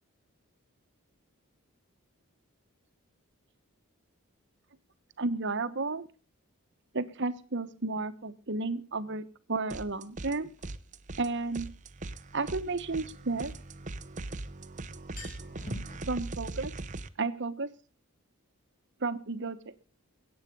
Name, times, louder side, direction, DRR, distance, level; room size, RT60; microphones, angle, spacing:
voice 1, 5.2-6.1 6.9-10.5 11.2-11.7 12.3-13.5 16.1-16.7 17.2-17.7 19.0-19.6, right 3 dB, 55° right, 11 dB, 1.1 m, -32 dB
sound 1, 9.7-10.4 10.6-17.1, right 2 dB, 35° right, 0.8 m, -40 dB
sound 2, 10.6-10.7 13.0-14.3 14.6-14.7 15.0-16.0, left 1 dB, 40° left, 6.4 m, -44 dB
21.0 x 8.9 x 5.3 m, 0.39 s
head